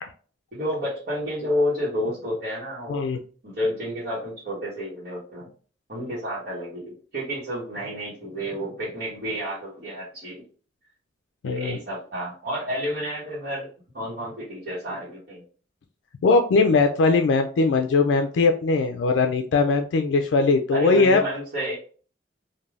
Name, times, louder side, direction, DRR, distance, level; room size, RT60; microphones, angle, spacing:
voice 1, 0.5-3.1 3.4-5.5 5.9-10.4 11.4-13.7 13.9-15.4 20.7-21.8, equal, 55° right, -9 dB, 1.1 m, -30 dB
voice 2, 11.4-11.8 16.2-21.2, left 3 dB, 85° left, 5 dB, 0.3 m, -20 dB
3.2 x 2.2 x 2.4 m, 0.40 s
head